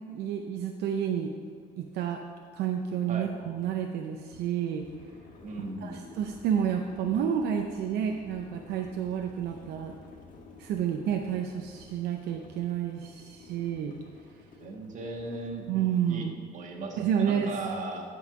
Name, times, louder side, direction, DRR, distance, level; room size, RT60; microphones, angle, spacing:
voice 1, 0.1-1.3 1.8-2.2 2.5-4.9 5.8-10.0 10.6-13.9 15.7-16.4 17.0-17.5, right 8 dB, 75° right, 3 dB, 0.6 m, -30 dB
sound 1, 0.9-1.0 1.4-16.1, left 3 dB, 55° left, 1.4 m, -53 dB
voice 2, 5.4-6.0 14.6-15.6 16.1-16.2 16.5-18.0, right 3 dB, 45° right, 1 dB, 1.5 m, -37 dB
10.5 x 5.5 x 4.8 m, 2.1 s
cardioid pair, 110°, 17 cm